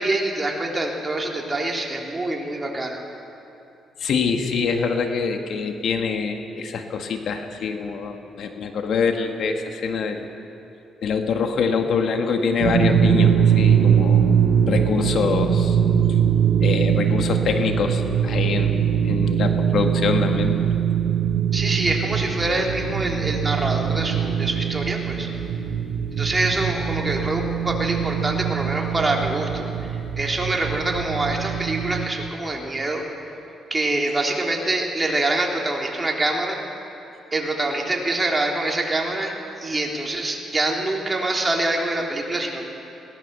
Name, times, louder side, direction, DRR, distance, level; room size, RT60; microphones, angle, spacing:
voice 1, 0.0-3.0 21.5-25.3 26.1-33.0 33.7-36.6 37.3-39.3 39.6-42.7, right 2 dB, 25° right, 0 dB, 3.4 m, -25 dB
voice 2, 4.0-10.3 11.0-14.3 14.7-15.8 16.6-18.7 19.0-20.6, left 5 dB, 65° left, 5 dB, 1.8 m, -24 dB
sound 1, 12.6-32.1, right 8 dB, 65° right, 1.6 m, -22 dB
21.5 x 18.0 x 6.8 m, 2.9 s
cardioid pair, 90°, 0 cm